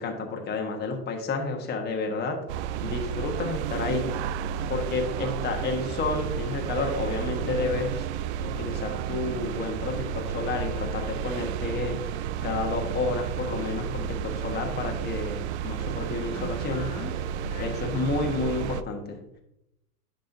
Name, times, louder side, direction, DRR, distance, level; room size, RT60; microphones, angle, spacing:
voice 1, 0.0-2.4 2.8-4.3 4.7-8.0 8.4-12.2 12.4-16.9 17.6-19.2, left 3 dB, 20° left, 2 dB, 1.2 m, -30 dB
sound 1, 2.5-18.8, right 8 dB, 50° right, 0.5 m, -32 dB
voice 2, 16.2-18.2, left 6 dB, 70° left, 3 dB, 1.5 m, -42 dB
10.5 x 5.4 x 2.7 m, 0.84 s
hypercardioid pair, 110°, 47 cm